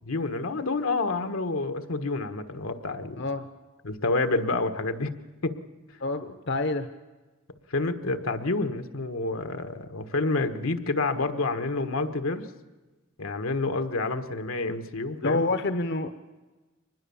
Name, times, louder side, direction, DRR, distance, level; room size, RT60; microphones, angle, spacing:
voice 1, 0.0-3.3 3.8-5.1 5.4-5.5 7.7-12.5 13.2-15.4, left 3 dB, 85° left, 9 dB, 1.4 m, -28 dB
voice 2, 3.2-3.5 6.0-6.9 15.2-16.1, left 2 dB, 55° left, 10 dB, 0.9 m, -27 dB
24.0 x 20.0 x 7.1 m, 1.2 s
head